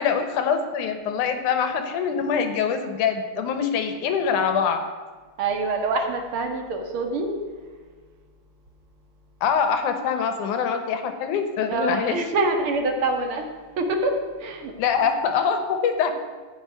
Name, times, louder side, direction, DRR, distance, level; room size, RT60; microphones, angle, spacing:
voice 1, 0.0-4.8 9.4-12.2 14.8-16.1, left 6 dB, 85° left, 8 dB, 2.7 m, -24 dB
voice 2, 5.4-7.3 11.7-13.4 13.8-14.1 14.4-14.7, right 3 dB, 50° right, 3 dB, 2.3 m, -25 dB
15.0 x 5.6 x 9.3 m, 1.4 s
omnidirectional pair, 3.5 m